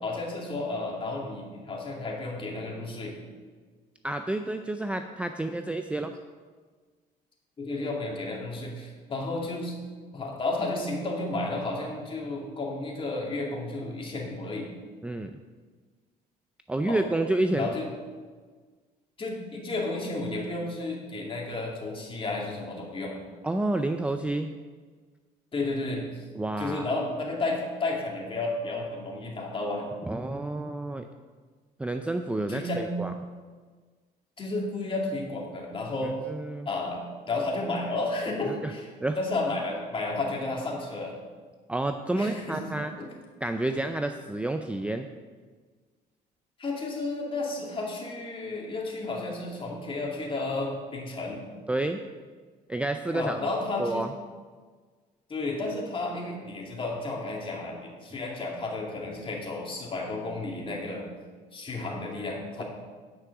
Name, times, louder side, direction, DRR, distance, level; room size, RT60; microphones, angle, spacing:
voice 1, 0.0-3.2 7.6-9.8 10.1-14.7 16.9-17.0 17.5-17.9 19.2-23.1 25.5-26.0 26.6-29.9 32.5-32.9 34.4-36.2 36.7-38.9 39.2-41.1 42.2-43.1 46.6-51.4 53.1-54.0 55.3-61.1 61.5-62.6, left 2 dB, 30° left, -2 dB, 2.5 m, -32 dB
voice 2, 4.0-6.1 15.0-15.4 16.7-17.7 23.4-24.5 26.3-26.9 30.1-31.1 31.8-33.1 36.3-36.7 38.5-38.7 39.0-39.2 41.7-42.9 43.4-45.1 51.7-52.0 52.7-53.5 53.8-54.1, right 2 dB, 5° right, 6 dB, 0.4 m, -29 dB
9.7 x 6.0 x 6.0 m, 1.5 s
cardioid pair, 110°, 17 cm